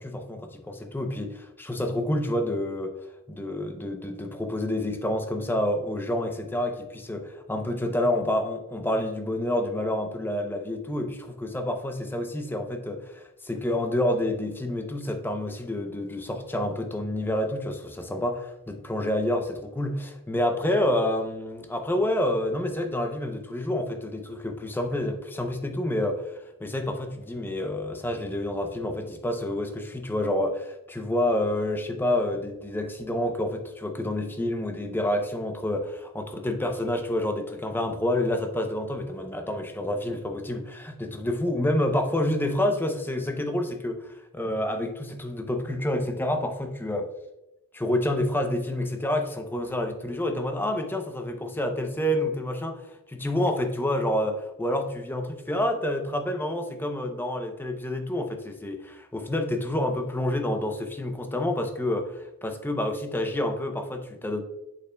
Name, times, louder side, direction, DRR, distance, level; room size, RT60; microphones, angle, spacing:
voice 1, 0.0-2.9 3.3-26.3 26.6-47.1 47.7-52.8 53.1-64.4, left 1 dB, 10° left, 4 dB, 0.6 m, -28 dB
8.1 x 6.7 x 2.2 m, 0.96 s
head